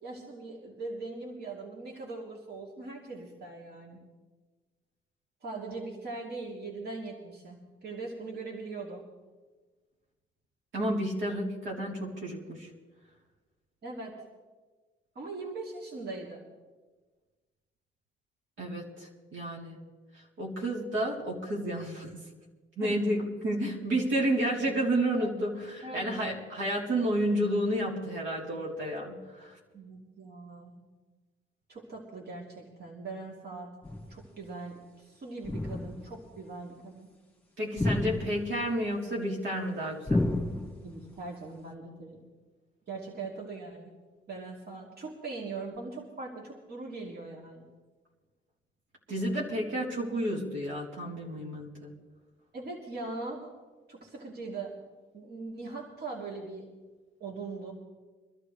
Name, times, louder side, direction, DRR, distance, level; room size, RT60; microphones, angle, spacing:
voice 1, 0.0-4.0 5.4-9.0 13.8-14.2 15.2-16.4 22.8-23.0 25.2-25.3 25.8-26.1 29.7-30.9 31.7-33.7 34.1-37.1 40.8-42.2 42.9-43.9 44.3-47.7 52.5-53.5 53.9-54.8 55.1-56.7 57.2-57.7, right 3 dB, 55° right, -3 dB, 3.3 m, -41 dB
voice 2, 10.7-12.7 18.6-19.8 20.4-22.1 22.8-29.6 37.6-40.3 49.1-51.9, right 1 dB, 75° right, -3 dB, 3.6 m, -31 dB
sound 1, 33.8-34.3 35.4-36.2 37.8-38.7 40.1-41.0, left 2 dB, 10° left, 2.3 m, -31 dB
24.5 x 12.5 x 3.3 m, 1.3 s
cardioid pair, 90°, 20 cm